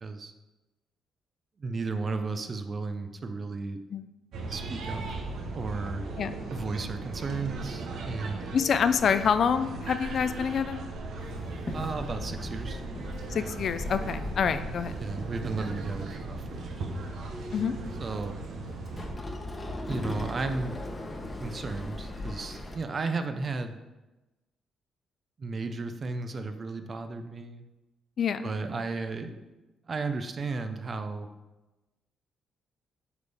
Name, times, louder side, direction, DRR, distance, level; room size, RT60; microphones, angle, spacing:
voice 1, 0.0-0.3 1.6-3.8 4.5-5.2 5.5-6.1 6.5-8.4 11.7-12.8 15.0-16.9 18.0-18.4 19.8-20.7 21.4-23.8 25.4-27.6 28.4-29.4 29.9-31.3, right 3 dB, 40° right, 8 dB, 0.6 m, -34 dB
sound 1, 4.3-19.1, right 3 dB, 70° right, 1.0 m, -38 dB
voice 2, 8.5-10.8 13.3-14.9 17.5-17.8 28.2-28.4, left 7 dB, 55° left, 11 dB, 0.4 m, -26 dB
Walk footsteps / Chatter / Hiss, 11.2-22.8, left 1 dB, 25° left, 1.0 m, -39 dB
8.1 x 5.2 x 3.5 m, 1.1 s
cardioid pair, 90°, 0 cm